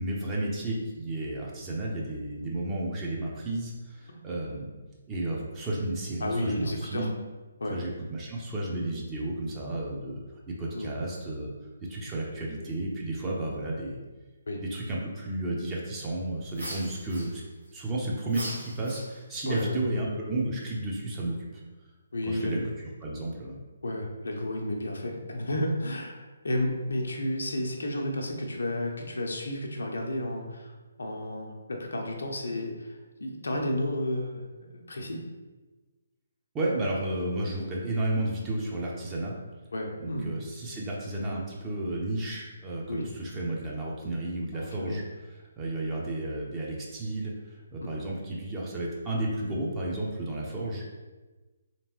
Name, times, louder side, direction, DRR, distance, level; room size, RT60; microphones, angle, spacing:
voice 1, 0.0-4.7 5.1-7.1 7.7-10.2 10.5-11.5 11.9-14.0 14.6-17.4 17.7-21.6 22.2-23.6 36.5-39.3 40.0-45.0 45.6-51.0, right 1 dB, 15° right, -4 dB, 0.6 m, -32 dB
voice 2, 6.2-7.1 7.6-7.8 10.7-11.0 14.5-14.6 19.4-19.8 22.1-22.6 23.8-30.7 31.0-35.2 39.7-40.3 42.9-43.1 44.5-45.0 47.8-48.0, left 1 dB, 70° left, 1 dB, 0.6 m, -32 dB
sound 1, 16.5-17.7 18.3-19.4, equal, 80° right, 1.5 m, -40 dB
3.4 x 3.0 x 2.9 m, 1.2 s
figure-of-eight pair, 140°, 0 cm